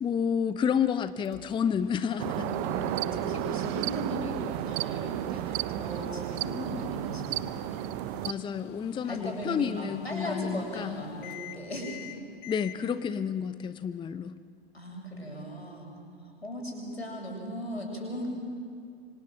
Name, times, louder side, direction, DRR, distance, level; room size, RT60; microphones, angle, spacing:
voice 1, 0.0-2.5 8.2-11.0 12.5-14.4, left 7 dB, 15° left, 12 dB, 0.8 m, -30 dB
Microwave oven, 1.2-12.8, left 11 dB, 50° left, 1.4 m, -46 dB
sound 1, 2.2-8.3, right 17 dB, 40° right, 0.8 m, -33 dB
voice 2, 2.4-7.8 9.0-12.1 12.8-12.9 14.7-15.9 16.2-18.3, equal, 90° left, 0 dB, 7.5 m, -37 dB
26.0 x 26.0 x 7.6 m, 2.2 s
figure-of-eight pair, 95°, 31 cm